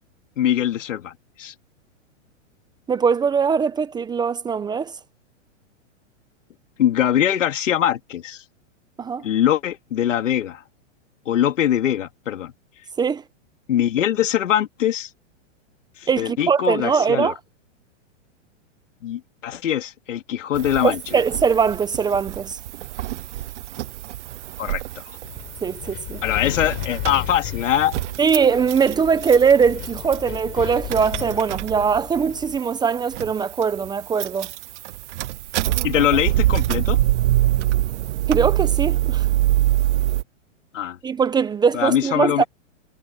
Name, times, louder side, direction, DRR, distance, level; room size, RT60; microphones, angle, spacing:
voice 1, 0.4-1.5 6.8-8.4 9.2-10.6 11.3-12.5 13.7-15.1 16.0-17.3 19.0-21.0 24.6-25.0 26.2-28.0 35.8-37.0 40.7-41.0 41.7-42.5, left 10 dB, 80° left, 3.7 m, -22 dB
voice 2, 2.9-5.0 9.0-9.2 13.0-13.2 16.1-17.4 20.8-22.6 25.6-26.2 28.2-34.5 38.3-39.3 41.0-42.4, right 6 dB, 10° right, 0.9 m, -21 dB
sound 1, 20.5-40.2, right 15 dB, 70° right, 0.5 m, -26 dB
Wind, 25.2-32.6, left 26 dB, 45° left, 4.6 m, -34 dB
hypercardioid pair, 145°, 37 cm